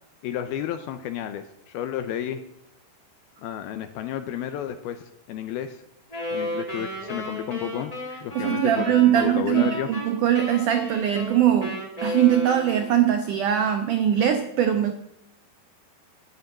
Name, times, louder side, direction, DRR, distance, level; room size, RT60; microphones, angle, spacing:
voice 1, 0.2-2.4 3.4-5.8 6.3-7.9 8.2-9.9, left 10 dB, 80° left, 9 dB, 2.3 m, -32 dB
Wind instrument woodwind instrument, 6.1-13.1, equal, 10° left, 2.9 m, -33 dB
voice 2, 8.4-14.9, right 10 dB, 80° right, 7 dB, 1.8 m, -21 dB
12.5 x 9.2 x 9.0 m, 0.82 s
omnidirectional pair, 5.0 m